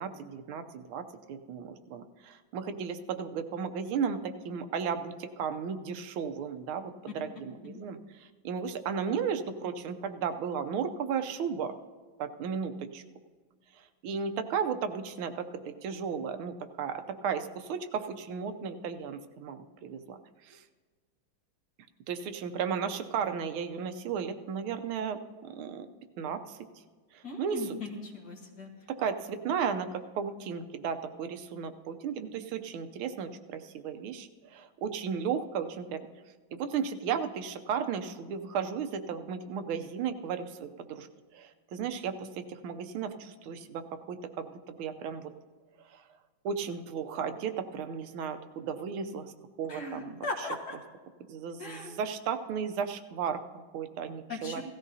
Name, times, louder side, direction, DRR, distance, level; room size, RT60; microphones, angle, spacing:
voice 1, 0.0-11.7 12.2-13.0 14.0-20.2 20.4-20.6 22.1-25.9 26.2-26.6 27.1-27.8 28.9-36.0 36.5-41.1 41.3-45.3 45.9-46.0 46.4-49.3 49.6-50.2 51.3-54.6, right 6 dB, 80° right, 8 dB, 1.5 m, -35 dB
voice 2, 27.2-28.7 49.7-50.8 51.6-51.9 54.3-54.6, left 3 dB, 50° left, 1 dB, 2.0 m, -38 dB
17.0 x 13.5 x 2.7 m, 1.4 s
omnidirectional pair, 2.3 m